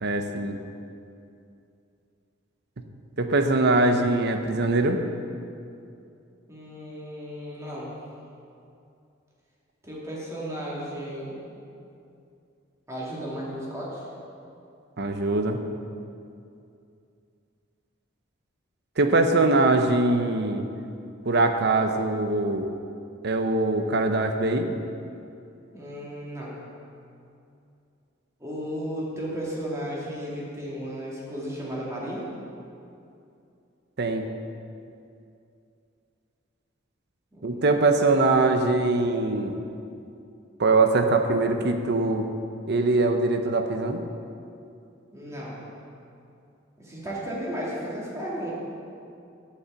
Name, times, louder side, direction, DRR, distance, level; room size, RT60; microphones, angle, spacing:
voice 1, 0.0-0.6 3.2-5.0 15.0-15.6 19.0-20.7 21.3-22.7 23.2-24.7 34.0-34.3 37.4-39.6 40.6-42.3 42.7-44.0, right 2 dB, 55° right, 6 dB, 0.8 m, -22 dB
voice 2, 6.5-8.0 9.8-11.4 12.9-14.1 25.7-26.5 28.4-32.3 37.3-37.6 45.1-45.6 46.8-48.5, equal, 15° right, -6 dB, 2.5 m, -34 dB
8.6 x 6.7 x 7.6 m, 2.6 s
head